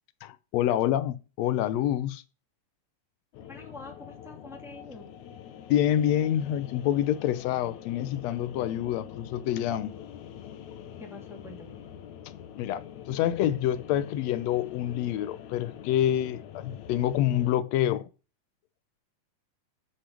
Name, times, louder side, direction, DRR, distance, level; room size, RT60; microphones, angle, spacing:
voice 1, 0.2-2.2 5.7-9.9 12.6-18.1, left 11 dB, 85° left, 1.5 m, -27 dB
sound 1, 3.3-17.6, left 9 dB, 70° left, 2.1 m, -45 dB
voice 2, 3.4-5.1 11.0-11.9 17.3-17.4, left 2 dB, ahead, 2.0 m, -46 dB
7.8 x 6.4 x 6.2 m
omnidirectional pair, 3.9 m